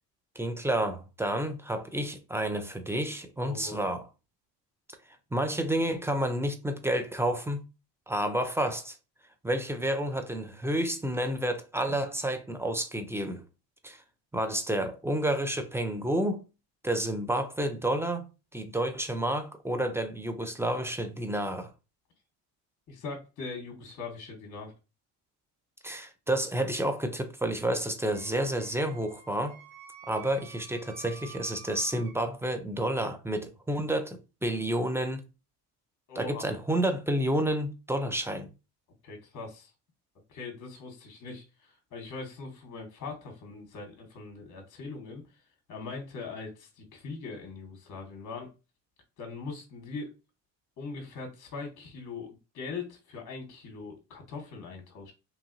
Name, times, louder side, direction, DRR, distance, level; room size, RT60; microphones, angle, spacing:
voice 1, 0.4-4.1 5.3-7.6 8.1-9.0 9.4-13.4 13.8-14.0 14.3-16.4 16.8-18.2 18.5-21.7 25.8-29.6 30.1-35.2 36.1-38.5, right 1 dB, 5° right, 0.3 m, -30 dB
voice 2, 3.4-3.8 22.9-24.7 36.1-36.4 39.0-39.7 40.3-45.2 45.7-48.5 49.2-50.1 50.8-55.1, left 4 dB, 40° left, 1.0 m, -41 dB
Wind instrument woodwind instrument, 28.0-32.2, right 7 dB, 90° right, 0.8 m, -50 dB
2.9 x 2.6 x 2.5 m
supercardioid pair, 70°, 46 cm